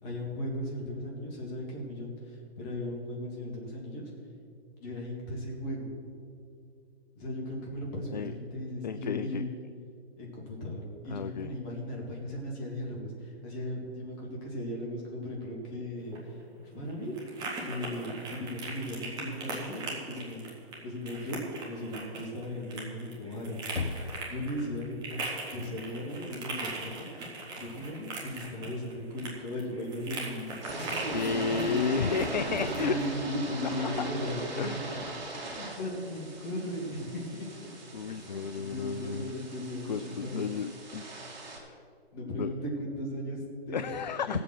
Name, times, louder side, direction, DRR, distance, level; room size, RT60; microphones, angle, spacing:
voice 1, 0.0-4.0 4.8-5.9 7.2-9.5 10.2-16.4 16.7-17.1 17.6-20.4 20.8-25.2 25.5-27.1 27.6-31.9 32.5-35.0 35.5-37.7 38.1-40.4 42.1-44.0 44.3-44.4, left 1 dB, 20° left, -2 dB, 2.4 m, -37 dB
voice 2, 8.8-9.4 11.1-11.5 31.0-33.0 33.8-33.9 34.6-35.0 37.9-39.3 39.9-41.1 41.4-41.8 42.3-42.5 43.7-44.4, left 6 dB, 45° left, 11 dB, 0.4 m, -32 dB
sound 1, 15.9-33.1, right 3 dB, 15° right, 1.4 m, -41 dB
Knock, 23.8-24.7, left 3 dB, 70° left, 1.4 m, -35 dB
sound 2, 30.5-41.6, right 2 dB, 45° right, 2.7 m, -39 dB
16.5 x 7.6 x 6.0 m, 2.4 s
figure-of-eight pair, 140°, 32 cm